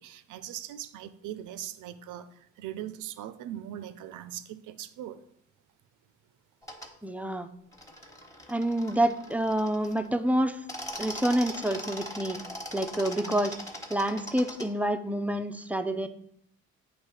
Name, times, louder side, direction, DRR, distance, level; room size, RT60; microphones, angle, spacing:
voice 1, 0.0-5.2, right 11 dB, 85° right, 13 dB, 0.5 m, -40 dB
sound 1, 6.6-6.9 7.7-10.1 10.5-14.7, equal, 10° left, 1.2 m, -41 dB
voice 2, 7.0-7.5 8.5-10.6 11.0-12.4 12.7-13.5 13.9-16.1, right 1 dB, 5° right, 9 dB, 0.4 m, -27 dB
8.2 x 3.1 x 4.8 m, 0.70 s
cardioid pair, 90°, 30 cm